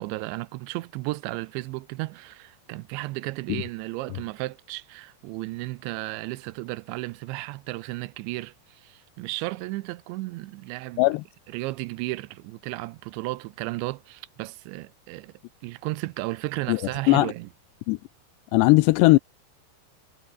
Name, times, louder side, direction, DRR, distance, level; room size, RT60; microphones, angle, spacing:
voice 1, 0.0-11.0 11.5-15.3 15.6-17.5, right 20 dB, 85° right, 2.9 m, -34 dB
voice 2, 18.5-19.2, left 21 dB, 85° left, 2.5 m, -18 dB
omnidirectional pair, 5.3 m